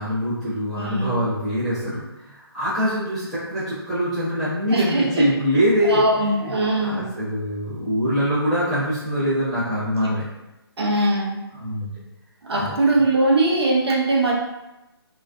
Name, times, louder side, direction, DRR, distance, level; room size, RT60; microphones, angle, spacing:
voice 1, 0.0-2.0 2.3-6.5 6.8-10.2 11.5-11.9 12.6-12.7, equal, ahead, -15 dB, 0.6 m, -24 dB
voice 2, 0.8-1.2 4.7-5.3 5.8-7.1 10.8-11.4 12.4-14.3, right 2 dB, 70° right, -3 dB, 0.7 m, -21 dB
2.3 x 2.3 x 2.3 m, 0.97 s
figure-of-eight pair, 155°, 14 cm